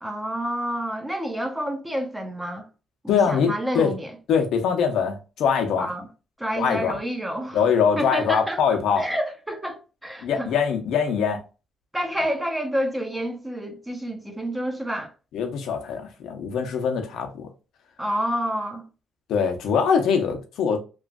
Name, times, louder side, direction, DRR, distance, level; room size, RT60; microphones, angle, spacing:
voice 1, 0.0-2.7 3.0-4.1 5.8-6.1 6.4-7.6 8.0-8.6 9.0-10.5 11.9-15.1 18.0-18.9, equal, 10° right, 0.6 m, -29 dB
voice 2, 3.1-3.9 4.3-5.9 6.6-7.0 7.5-9.0 10.2-11.4 15.3-17.5 19.3-20.8, left 6 dB, 80° left, 0.7 m, -23 dB
3.0 x 2.5 x 2.4 m
cardioid pair, 90°, 0 cm